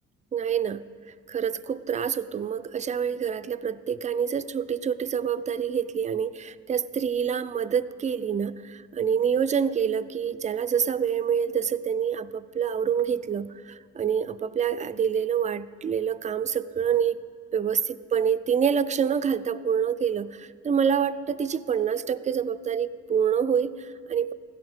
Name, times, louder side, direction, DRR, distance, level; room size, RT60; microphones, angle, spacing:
voice 1, 0.3-0.8 1.3-17.2 17.5-17.8 18.1-24.3, right 7 dB, 25° right, 14 dB, 0.3 m, -26 dB
16.5 x 12.0 x 3.6 m, 2.2 s
cardioid pair, 90°, 30 cm